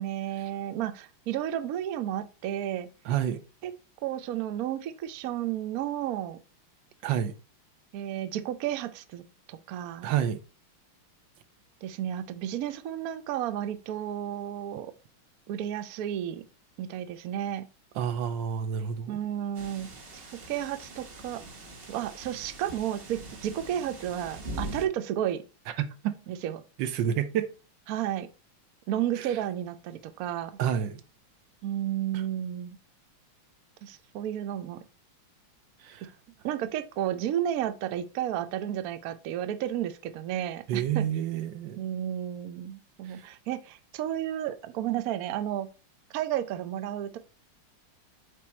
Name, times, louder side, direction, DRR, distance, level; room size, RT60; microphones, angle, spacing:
voice 1, 0.0-2.9 3.6-3.7 4.0-6.4 7.9-10.1 11.8-14.9 15.5-16.4 16.8-17.7 19.1-19.9 20.5-21.4 21.9-25.4 26.3-26.6 27.9-28.3 28.9-30.5 31.6-32.8 33.8-34.8 36.4-41.1 41.8-45.7 46.1-47.2, right 11 dB, 90° right, 0.7 m, -32 dB
voice 2, 3.0-3.4 7.0-7.4 10.0-10.4 17.9-19.2 25.8-26.2 26.8-27.5 29.2-29.4 30.6-31.0 32.1-32.2 35.8-36.1 40.7-41.9 43.1-43.3, right 9 dB, 70° right, 1.2 m, -29 dB
sound 1, 19.5-24.9, right 1 dB, 35° right, 1.0 m, -42 dB
8.4 x 3.5 x 4.3 m
omnidirectional pair, 2.4 m